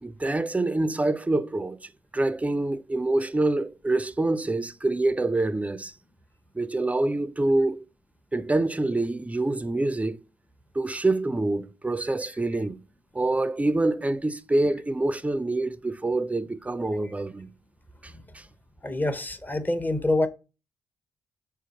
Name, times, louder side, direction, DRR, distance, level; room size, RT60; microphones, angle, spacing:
voice 1, 0.0-5.9 6.5-7.8 8.3-10.2 10.7-12.8 13.1-17.5 18.0-18.5, right 2 dB, 15° right, 0.4 m, -26 dB
voice 2, 18.8-20.3, left 2 dB, 20° left, 0.7 m, -26 dB
4.3 x 2.4 x 4.0 m
hypercardioid pair, 45°, 9 cm